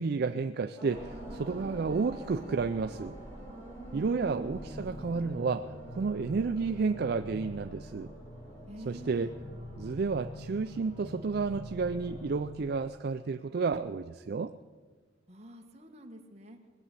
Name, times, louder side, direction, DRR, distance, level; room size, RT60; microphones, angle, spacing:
voice 1, 0.0-3.2 3.9-8.1 8.9-9.3 9.8-14.5, right 4 dB, 55° right, 10 dB, 0.4 m, -31 dB
sound 1, 0.7-12.4, right 1 dB, 15° left, 4.2 m, -48 dB
sound 2, 0.9-5.8, equal, 85° left, 1.1 m, -50 dB
voice 2, 3.9-4.6 8.7-9.3 15.3-16.6, equal, 35° right, 3 dB, 1.4 m, -46 dB
sound 3, 4.4-12.7, left 1 dB, 55° left, 1.2 m, -45 dB
19.5 x 7.6 x 8.2 m, 1.5 s
head